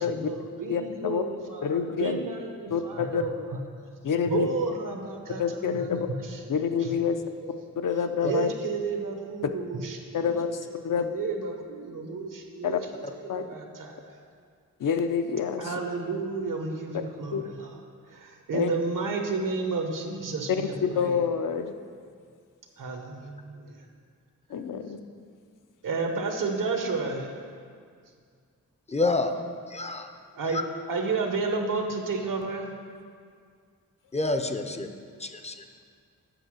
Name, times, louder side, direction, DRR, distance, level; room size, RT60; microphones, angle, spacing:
voice 1, 0.1-1.7 2.0-3.6 4.3-5.9 6.8-7.3 8.2-10.3 10.9-12.9 13.3-13.9 15.6-17.7 18.1-21.2 22.8-23.7 25.8-27.3 30.3-30.6 30.9-32.7, right 4 dB, 75° right, 3 dB, 1.1 m, -31 dB
voice 2, 0.7-1.2 1.6-2.2 2.7-3.2 4.0-4.5 5.4-6.1 6.5-7.2 7.8-8.5 9.4-9.5 10.1-11.1 12.6-12.8 13.3-13.4 14.8-15.8 17.3-17.4 18.5-18.7 20.5-21.7 24.5-25.0, left 7 dB, 70° left, 7 dB, 0.6 m, -27 dB
voice 3, 28.9-29.3 29.7-30.1 30.5-30.6 34.1-34.9 35.2-35.6, left 2 dB, 20° left, 6 dB, 0.5 m, -28 dB
7.9 x 5.6 x 6.3 m, 2.1 s
wide cardioid pair, 120°, 32 cm